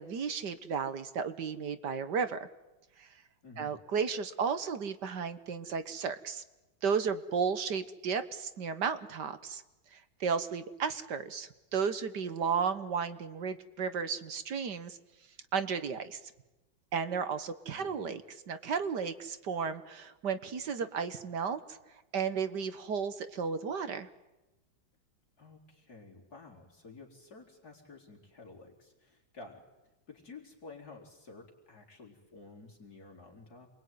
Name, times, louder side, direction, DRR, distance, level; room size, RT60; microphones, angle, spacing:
voice 1, 0.0-2.5 3.0-3.1 3.6-6.4 6.8-9.6 9.9-15.0 15.5-16.2 16.9-21.8 22.1-24.1, right 6 dB, 60° right, 11 dB, 1.8 m, -34 dB
voice 2, 3.4-3.7 17.7-18.1 25.4-29.6 30.1-33.7, left 3 dB, 45° left, 0 dB, 4.5 m, -52 dB
28.0 x 22.5 x 9.4 m, 1.0 s
omnidirectional pair, 2.2 m